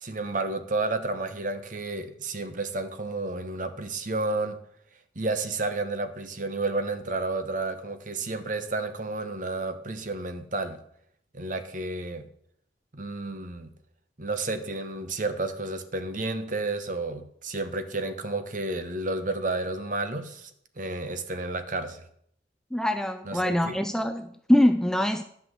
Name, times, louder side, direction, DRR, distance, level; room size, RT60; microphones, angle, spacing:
voice 1, 0.0-4.6 5.2-10.8 11.3-12.2 12.9-13.7 14.2-20.5 20.8-22.0 23.3-23.8, right 2 dB, 45° right, 9 dB, 1.1 m, -31 dB
voice 2, 22.7-25.2, left 1 dB, 5° left, 8 dB, 0.4 m, -24 dB
11.0 x 5.9 x 7.5 m, 0.67 s
head